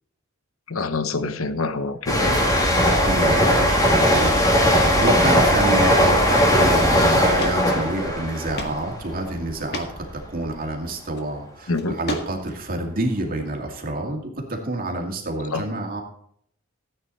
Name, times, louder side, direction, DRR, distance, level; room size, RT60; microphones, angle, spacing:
voice 1, 0.7-2.4 11.7-11.9 15.5-15.6, left 3 dB, 80° left, 1.0 m, -26 dB
sound 1, 2.1-9.5 9.8-10.1, equal, 20° left, 2.5 m, -19 dB
voice 2, 3.0-16.0, right 2 dB, 45° right, 2.3 m, -28 dB
sound 2, 7.4-7.6 7.9-8.0 8.6-8.8 9.1-9.2 9.7-9.9 11.0-11.2 11.7-12.6, left 1 dB, 55° left, 1.8 m, -30 dB
14.5 x 9.0 x 4.2 m
head